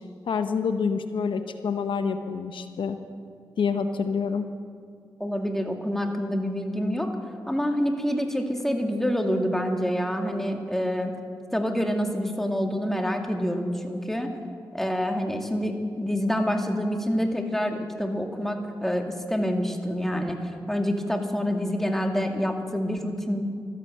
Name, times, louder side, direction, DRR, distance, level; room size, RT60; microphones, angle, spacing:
voice 1, 0.3-3.0 3.6-4.5, left 5 dB, 80° left, 8 dB, 0.7 m, -27 dB
voice 2, 5.2-7.1 7.5-11.1 11.5-14.3 14.7-23.4, equal, 5° left, 3 dB, 2.1 m, -27 dB
13.0 x 11.5 x 7.7 m, 2.2 s
supercardioid pair, 45°, 8 cm